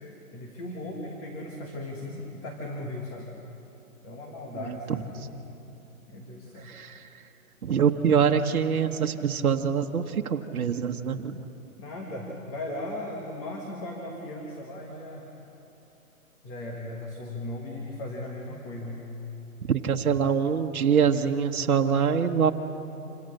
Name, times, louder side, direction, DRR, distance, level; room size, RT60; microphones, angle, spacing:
voice 1, 0.3-3.3 4.0-5.3 6.1-6.7 11.8-15.2 16.4-19.1, left 1 dB, 15° left, -1 dB, 1.5 m, -37 dB
voice 2, 4.5-5.0 6.6-7.2 7.6-11.4 19.7-22.5, right 7 dB, 75° right, 3 dB, 1.3 m, -25 dB
27.0 x 17.5 x 6.6 m, 2.9 s
hypercardioid pair, 165°, 43 cm